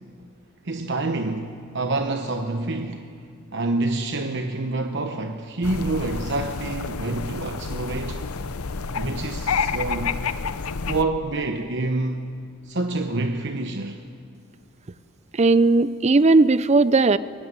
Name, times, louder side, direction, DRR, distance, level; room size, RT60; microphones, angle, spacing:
voice 1, 0.6-3.1 3.5-8.2 8.9-10.2 10.8-12.3 12.6-14.0, right 2 dB, 55° right, 5 dB, 1.0 m, -27 dB
sound 1, 5.6-11.0, left 5 dB, 80° left, 0.8 m, -29 dB
voice 2, 15.3-17.2, right 3 dB, 30° right, 16 dB, 0.5 m, -17 dB
23.0 x 17.0 x 9.7 m, 2.2 s
head